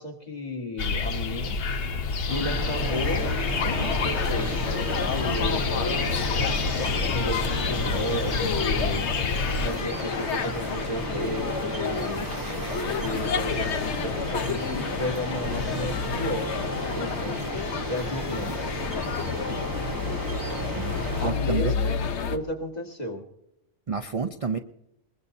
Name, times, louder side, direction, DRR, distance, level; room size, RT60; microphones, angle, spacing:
voice 1, 0.0-1.6 2.3-3.4 3.6-4.5 5.0-6.5 6.8-9.1 9.6-12.3 12.9-16.5 16.9-17.4 17.9-18.5 21.2-22.0 22.3-23.2, left 1 dB, 40° left, 2 dB, 2.0 m, -33 dB
sound 1, 0.8-9.7, left 4 dB, 60° left, 1.0 m, -28 dB
sound 2, 2.3-21.3, right 1 dB, 20° right, 1.0 m, -34 dB
sound 3, 2.8-22.4, left 5 dB, 85° left, 1.2 m, -31 dB
voice 2, 20.8-21.8 23.9-24.6, right 5 dB, 40° right, 7 dB, 0.6 m, -30 dB
21.5 x 21.0 x 2.7 m, 0.81 s
omnidirectional pair, 1.1 m